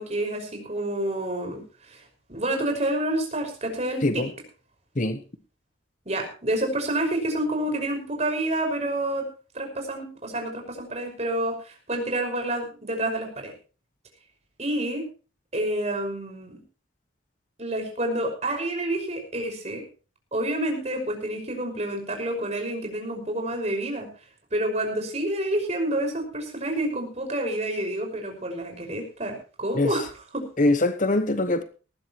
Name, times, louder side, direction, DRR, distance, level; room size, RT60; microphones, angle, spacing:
voice 1, 0.0-1.6 1.9-2.0 2.3-4.2 6.1-9.2 9.5-13.5 14.6-15.1 15.5-16.5 17.6-19.8 20.3-24.1 24.5-30.4, right 1 dB, 35° right, 5.6 m, -28 dB
voice 2, 30.6-31.6, left 2 dB, 40° left, 1.1 m, -22 dB
19.0 x 15.0 x 3.1 m
head